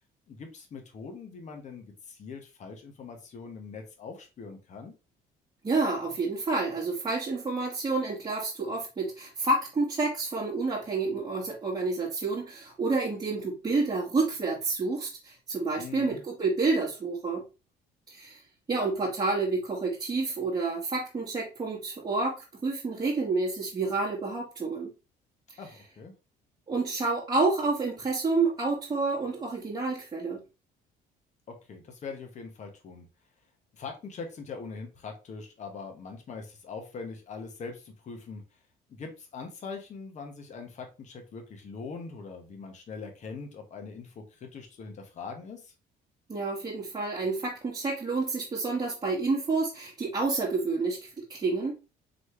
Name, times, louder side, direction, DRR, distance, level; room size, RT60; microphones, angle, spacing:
voice 1, 0.3-4.9 15.8-16.2 25.6-26.1 31.5-33.1 33.7-38.4 38.9-45.7, left 4 dB, 45° left, 4 dB, 1.1 m, -42 dB
voice 2, 5.6-17.4 18.1-18.4 18.7-24.9 26.7-30.4 46.3-51.7, right 3 dB, 25° right, -6 dB, 1.4 m, -29 dB
4.1 x 3.2 x 3.2 m, 0.29 s
cardioid pair, 110°, 17 cm